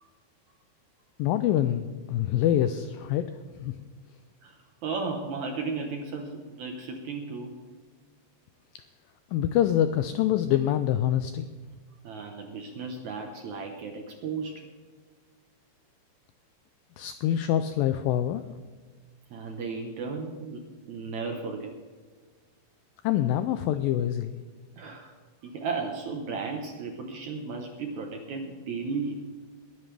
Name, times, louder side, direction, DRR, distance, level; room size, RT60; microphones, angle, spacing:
voice 1, 1.2-3.3 3.6-3.7 9.3-11.5 17.0-18.4 23.0-24.4, left 11 dB, 90° left, 10 dB, 2.0 m, -25 dB
voice 2, 4.4-7.6 12.0-14.6 19.3-21.8 24.8-25.2 25.4-29.2, right 4 dB, 65° right, 3 dB, 2.0 m, -35 dB
21.0 x 11.5 x 3.4 m, 1.4 s
omnidirectional pair, 4.6 m